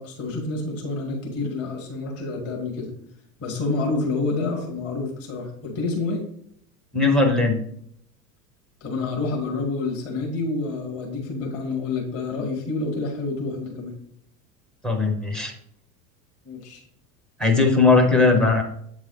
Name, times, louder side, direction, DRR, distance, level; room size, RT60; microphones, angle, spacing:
voice 1, 0.0-2.9 3.4-6.2 8.8-13.9 16.4-16.8, left 3 dB, 30° left, 0 dB, 1.3 m, -28 dB
voice 2, 6.9-7.6 14.8-15.5 17.4-18.6, left 3 dB, ahead, 5 dB, 0.4 m, -18 dB
7.8 x 3.2 x 3.9 m, 0.68 s
figure-of-eight pair, 80°, 49 cm